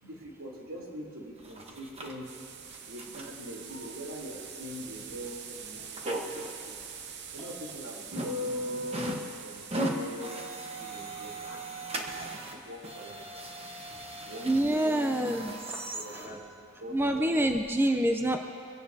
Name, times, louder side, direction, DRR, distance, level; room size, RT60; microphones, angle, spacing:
voice 1, 0.0-2.3 2.8-6.8 7.3-11.6 11.9-13.3 14.2-14.9 15.9-16.5 16.8-17.3, equal, 80° right, -2 dB, 3.1 m, -43 dB
sound 1, 1.4-2.1 2.6-3.3 3.7-3.8 4.6-4.7 5.1-5.2 6.0-6.5 7.0-7.1 7.4-7.7 8.1-9.3 9.6-12.6 12.8-16.3 17.0-17.1 17.5-17.6, equal, 30° right, 1.1 m, -37 dB
sound 2, 2.2-13.3, right 7 dB, 55° right, 0.8 m, -46 dB
voice 2, 14.4-16.3 16.9-18.4, right 1 dB, 10° right, 4 dB, 0.5 m, -27 dB
24.0 x 16.5 x 2.7 m, 2.4 s
head